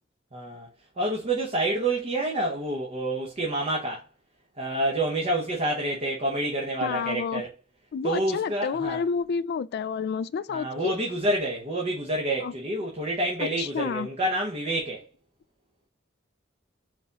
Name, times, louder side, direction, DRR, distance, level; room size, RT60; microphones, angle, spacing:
voice 1, 0.3-0.7 1.0-4.0 4.6-7.5 8.0-9.0 10.5-15.0, right 1 dB, 35° right, 0.9 m, -28 dB
voice 2, 6.8-7.4 7.9-10.9 12.4-12.5 13.6-14.1, left 6 dB, 55° left, 0.3 m, -29 dB
4.9 x 3.9 x 2.4 m
head